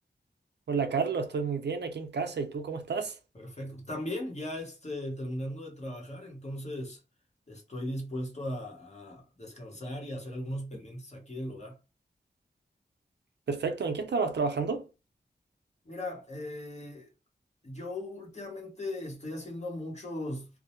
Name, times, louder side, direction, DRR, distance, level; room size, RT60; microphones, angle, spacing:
voice 1, 0.7-3.2 13.5-14.9, right 5 dB, 80° right, 0.5 m, -30 dB
voice 2, 3.3-7.0 7.5-11.8 15.9-17.1 17.6-20.5, left 1 dB, 40° left, 0.9 m, -38 dB
2.2 x 2.0 x 2.8 m
wide cardioid pair, 100°, 18 cm